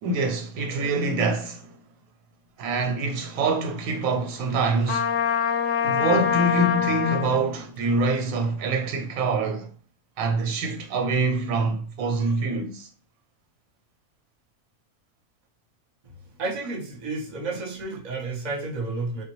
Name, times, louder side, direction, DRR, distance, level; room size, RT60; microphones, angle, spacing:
voice 1, 0.0-1.8 2.6-5.1 5.8-9.7 10.2-12.9, right 3 dB, 90° right, 1.0 m, -25 dB
Trumpet, 4.9-7.4, left 8 dB, 65° left, 0.8 m, -24 dB
voice 2, 16.4-19.2, right 3 dB, 40° right, 0.7 m, -31 dB
3.4 x 2.1 x 3.0 m
omnidirectional pair, 1.4 m